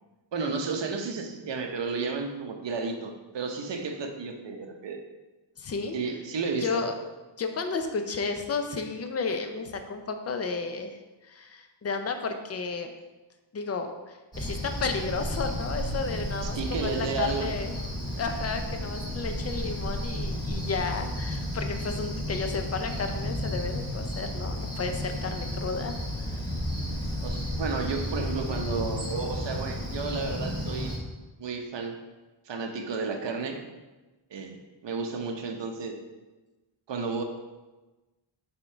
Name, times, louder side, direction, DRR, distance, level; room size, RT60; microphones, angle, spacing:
voice 1, 0.3-5.0 5.9-6.9 16.4-17.5 27.0-31.0 31.4-32.0 32.5-33.6 34.3-34.6 34.8-36.0 36.9-37.2, right 4 dB, 65° right, 4 dB, 0.9 m, -32 dB
voice 2, 5.6-6.1 6.6-7.0 7.4-11.0 11.3-12.9 13.5-17.8 18.2-26.0, left 4 dB, 35° left, 6 dB, 0.5 m, -32 dB
Cricket, 14.3-31.0, left 1 dB, 10° left, 1.8 m, -32 dB
6.0 x 3.7 x 4.4 m, 1.2 s
wide cardioid pair, 155°, 47 cm